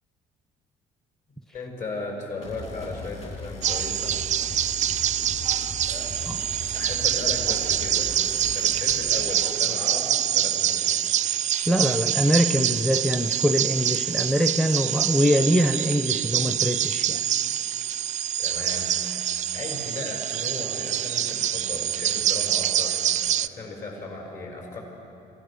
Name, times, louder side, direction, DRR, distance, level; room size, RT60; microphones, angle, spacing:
voice 1, 1.5-4.2 5.9-6.1 6.7-8.1 8.4-11.1 18.4-18.9 19.5-24.8, left 3 dB, 55° left, 0 dB, 6.7 m, -36 dB
sound 1, 2.4-9.1, left 3 dB, 40° left, 4.4 m, -39 dB
sound 2, 3.6-23.5, right 11 dB, 45° right, 0.4 m, -25 dB
voice 2, 11.7-17.3, equal, ahead, 8 dB, 0.7 m, -23 dB
26.5 x 16.0 x 6.8 m, 2.8 s
cardioid pair, 110°, 17 cm